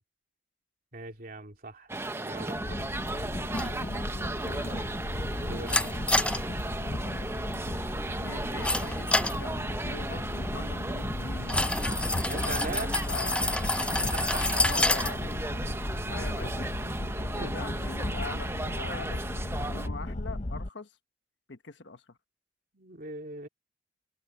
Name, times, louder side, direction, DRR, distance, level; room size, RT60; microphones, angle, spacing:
voice 1, 0.9-2.9 5.4-6.2 12.2-12.9 13.1-13.6 14.1-14.6 17.4-17.5 22.7-23.5, right 3 dB, 50° right, 2.8 m, -41 dB
sound 1, 1.9-19.9, right 2 dB, 15° right, 0.8 m, -36 dB
sound 2, 2.5-20.7, left 1 dB, 40° left, 0.9 m, -35 dB
sound 3, 3.5-16.8, left 2 dB, 5° left, 0.4 m, -32 dB
voice 2, 4.3-5.0 8.2-9.1 9.4-11.7 12.3-13.4 13.6-14.1 14.5-15.2 16.1-16.6 17.3-19.2 19.7-20.9 21.5-22.2, left 3 dB, 75° left, 1.3 m, -43 dB
head